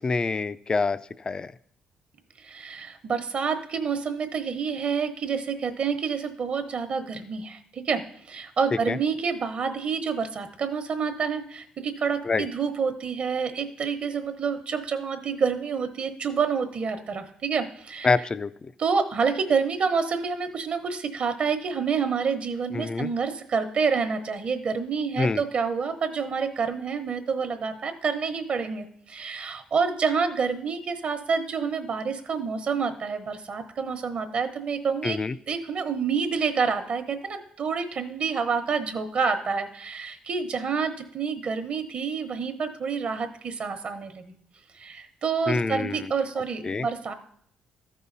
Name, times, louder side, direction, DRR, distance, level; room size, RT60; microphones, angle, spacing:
voice 1, 0.0-1.5 8.9-9.0 12.2-12.5 18.0-18.7 22.7-23.1 25.2-25.4 35.0-35.4 45.5-46.1 46.6-46.9, left 4 dB, 30° left, 15 dB, 0.4 m, -26 dB
voice 2, 2.4-18.1 18.8-35.2 35.5-44.3 44.7-47.1, right 5 dB, 55° right, 8 dB, 1.1 m, -28 dB
13.5 x 5.5 x 4.1 m, 0.67 s
cardioid pair, 85°, 3 cm